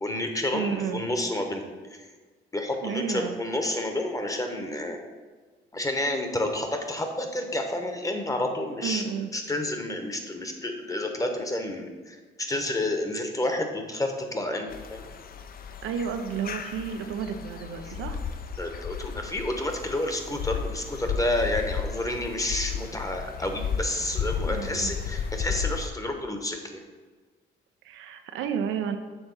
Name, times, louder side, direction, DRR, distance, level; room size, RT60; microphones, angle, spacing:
voice 1, 0.0-1.6 1.9-2.0 2.5-5.0 5.7-9.0 9.3-15.1 18.6-26.8, left 1 dB, 15° left, 4 dB, 1.0 m, -30 dB
voice 2, 0.5-1.0 2.8-3.4 8.8-9.3 15.8-18.2 24.5-24.9 27.8-29.0, right 7 dB, 90° right, 7 dB, 0.6 m, -31 dB
sound 1, 14.7-25.9, left 6 dB, 50° left, 0.6 m, -34 dB
7.1 x 3.5 x 5.3 m, 1.4 s
cardioid pair, 90°, 20 cm